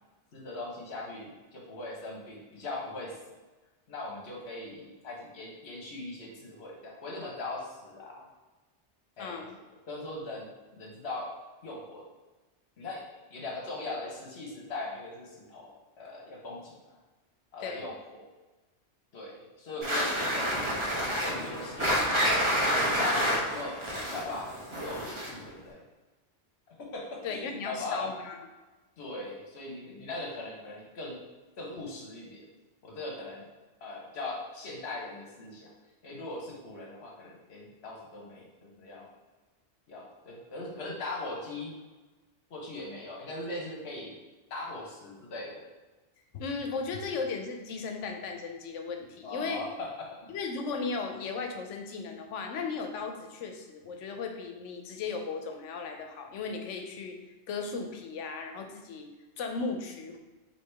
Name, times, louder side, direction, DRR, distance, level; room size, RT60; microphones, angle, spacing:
voice 1, 0.3-3.2 3.9-8.3 9.2-9.5 9.9-11.3 11.6-12.0 12.8-16.9 17.5-18.3 19.1-20.6 21.2-22.0 22.2-23.8 24.1-25.8 26.9-28.1 29.0-31.2 31.6-32.5 32.8-33.5 33.8-35.7 36.0-38.5 38.7-39.1 39.9-41.7 42.5-44.1 44.5-45.6 49.2-50.3, left 2 dB, 65° left, -2 dB, 1.2 m, -40 dB
voice 2, 9.2-9.6 17.6-17.8 27.2-28.4 46.3-49.6 50.3-57.2 57.5-59.1 59.4-60.2, left 4 dB, 90° left, 4 dB, 0.9 m, -36 dB
sound 1, 19.8-25.5, equal, 30° right, 0.8 m, -28 dB
4.6 x 2.8 x 3.3 m, 1.2 s
omnidirectional pair, 1.2 m